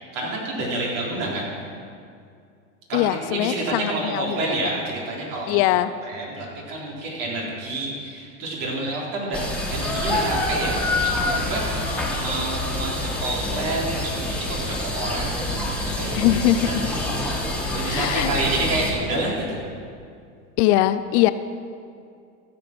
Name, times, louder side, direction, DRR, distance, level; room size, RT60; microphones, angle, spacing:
voice 1, 0.1-1.5 2.9-11.7 12.2-15.4 16.0-16.2 16.6-17.0 17.7-19.6, right 2 dB, 55° right, -3 dB, 3.6 m, -28 dB
voice 2, 2.9-4.4 5.5-5.9 16.1-16.9 17.6-18.3 20.6-21.3, left 13 dB, 60° left, 13 dB, 0.6 m, -21 dB
sound 1, 9.3-18.9, left 1 dB, 5° left, 2.0 m, -26 dB
14.5 x 7.0 x 6.0 m, 2.4 s
supercardioid pair, 110°, 39 cm